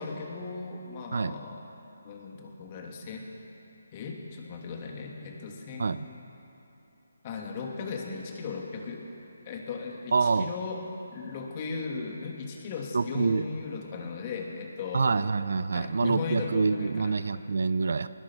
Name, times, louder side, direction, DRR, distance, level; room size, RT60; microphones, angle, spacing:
voice 1, 0.0-1.6 2.0-3.2 3.9-6.0 7.2-9.0 9.4-15.1 15.7-17.2, left 4 dB, 30° left, 1 dB, 2.8 m, -37 dB
voice 2, 10.1-10.5 12.9-13.5 14.9-18.1, right 4 dB, 65° right, 15 dB, 0.6 m, -26 dB
21.0 x 20.0 x 6.5 m, 2.8 s
figure-of-eight pair, 155°, 0 cm